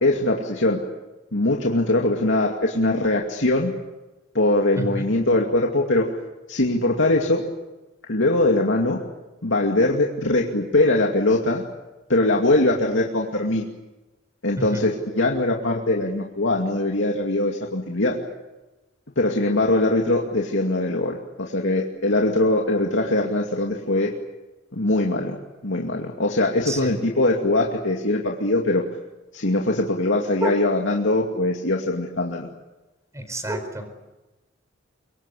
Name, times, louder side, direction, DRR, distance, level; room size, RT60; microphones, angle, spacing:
voice 1, 0.0-0.8 1.3-3.7 4.3-6.1 6.5-7.4 8.1-9.0 9.4-11.6 12.1-13.7 14.4-18.2 19.2-24.1 24.7-25.4 25.6-28.8 29.3-32.5, left 2 dB, 85° left, 0 dB, 2.5 m, -21 dB
voice 2, 4.8-5.1 14.6-14.8 26.6-26.9 30.4-30.5 33.1-34.0, right 1 dB, 15° right, 8 dB, 4.6 m, -29 dB
25.0 x 24.0 x 8.4 m, 1.1 s
head